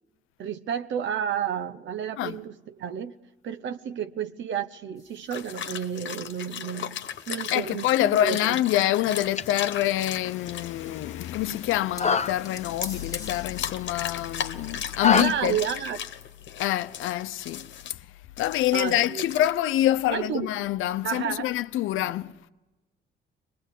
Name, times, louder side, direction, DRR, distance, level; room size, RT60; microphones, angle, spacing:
voice 1, 0.4-3.1 3.4-7.9 8.2-8.6 15.1-16.0 18.7-19.3 20.1-20.5 21.0-21.5, right 8 dB, 70° right, 0.9 m, -31 dB
sound 1, 5.0-14.3, left 3 dB, 15° left, 1.7 m, -47 dB
sound 2, 5.3-11.8 12.3-17.9 18.4-19.5, left 9 dB, 65° left, 1.2 m, -37 dB
voice 2, 7.5-15.6 16.6-17.7 18.4-22.3, left 13 dB, 90° left, 0.7 m, -26 dB
Manipulated Breathing, 9.1-15.2, left 6 dB, 35° left, 0.8 m, -30 dB
23.0 x 21.0 x 8.3 m
cardioid pair, 90°, 20 cm